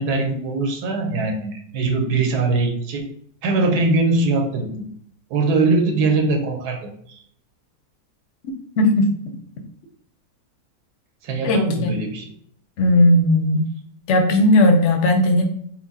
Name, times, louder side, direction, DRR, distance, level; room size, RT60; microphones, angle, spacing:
voice 1, 0.0-3.0 3.4-4.9 5.3-7.2 11.2-12.2, right 3 dB, 85° right, 4 dB, 1.3 m, -21 dB
voice 2, 8.8-9.1 11.4-11.9 12.8-13.6 14.1-15.4, left 1 dB, 60° left, 3 dB, 0.9 m, -16 dB
4.4 x 2.1 x 4.0 m, 0.63 s
omnidirectional pair, 1.6 m